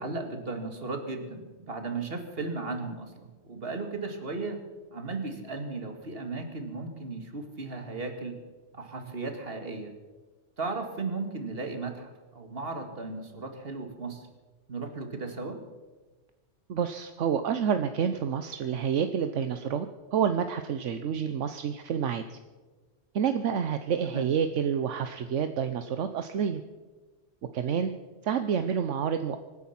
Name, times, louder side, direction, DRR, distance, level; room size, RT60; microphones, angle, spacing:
voice 1, 0.0-4.6 4.9-8.4 8.7-9.9 10.6-14.3 14.7-15.6 24.1-24.3, right 3 dB, 50° right, 5 dB, 2.3 m, -36 dB
voice 2, 16.7-19.9 20.1-22.4 23.1-26.6 27.5-27.9 28.2-29.4, right 7 dB, 75° right, 9 dB, 1.1 m, -28 dB
25.0 x 9.9 x 5.8 m, 1.3 s
omnidirectional pair, 1.3 m